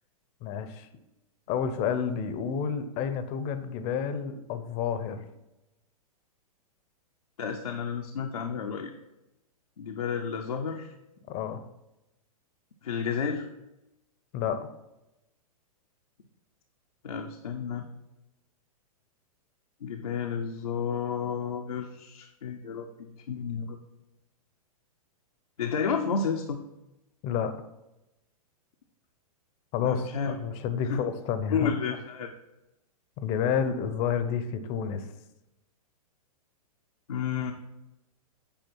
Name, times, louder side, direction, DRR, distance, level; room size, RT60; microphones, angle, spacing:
voice 1, 0.4-0.9 1.5-5.3 11.3-11.6 14.3-14.7 27.2-27.5 29.7-31.7 33.2-35.1, left 7 dB, 35° left, 11 dB, 0.8 m, -30 dB
voice 2, 7.4-8.9 9.8-10.9 12.8-13.5 17.0-17.9 19.8-23.8 25.6-26.6 29.8-30.4 30.9-31.0 31.5-32.3 37.1-37.5, left 6 dB, 70° left, 2 dB, 0.7 m, -31 dB
9.0 x 4.9 x 4.6 m, 0.94 s
figure-of-eight pair, 105°, 19 cm